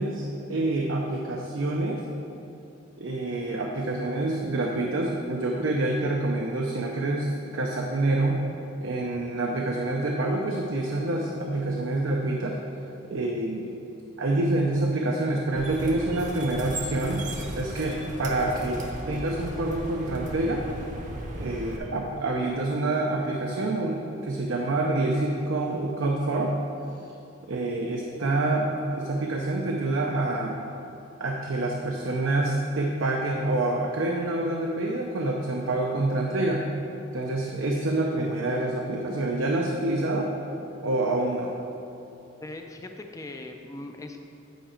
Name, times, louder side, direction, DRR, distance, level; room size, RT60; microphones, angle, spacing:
voice 1, 0.0-2.0 3.0-8.4 8.8-12.6 13.1-13.7 14.2-17.3 17.5-20.6 21.4-26.5 27.5-30.6 31.2-36.7 37.1-40.3 40.8-41.5, right 2 dB, 80° right, 0 dB, 0.6 m, -27 dB
sound 1, 15.6-21.8, right 1 dB, 40° right, 0.7 m, -36 dB
voice 2, 42.4-44.2, left 2 dB, 15° left, 4 dB, 0.3 m, -40 dB
9.2 x 5.0 x 4.4 m, 2.8 s
head